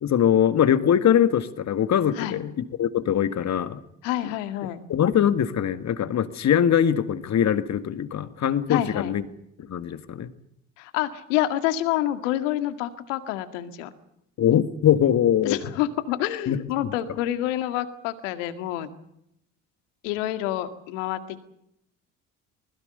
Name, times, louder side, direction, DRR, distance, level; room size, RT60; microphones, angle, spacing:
voice 1, 0.0-3.8 4.2-4.3 4.9-9.2 9.6-10.3 14.4-15.6 16.5-16.9, left 9 dB, 45° left, 12 dB, 2.0 m, -22 dB
voice 2, 4.0-4.8 8.7-9.2 10.8-13.9 15.4-18.9 20.0-21.4, left 13 dB, 80° left, 10 dB, 2.1 m, -28 dB
24.0 x 20.5 x 6.8 m, 0.77 s
hypercardioid pair, 65°, 37 cm